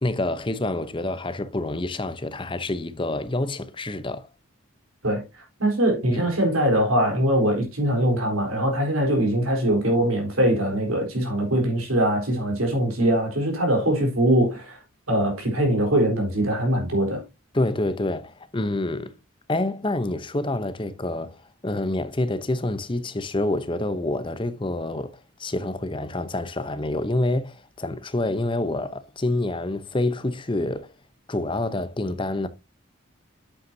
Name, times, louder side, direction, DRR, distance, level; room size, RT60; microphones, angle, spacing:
voice 1, 0.0-4.3 6.1-6.3 17.5-19.2 19.5-30.9 31.3-32.5, left 2 dB, 25° left, 0.7 m, -27 dB
voice 2, 5.6-14.8 15.1-17.2, right 1 dB, 90° right, 3.9 m, -22 dB
8.6 x 7.9 x 2.7 m
head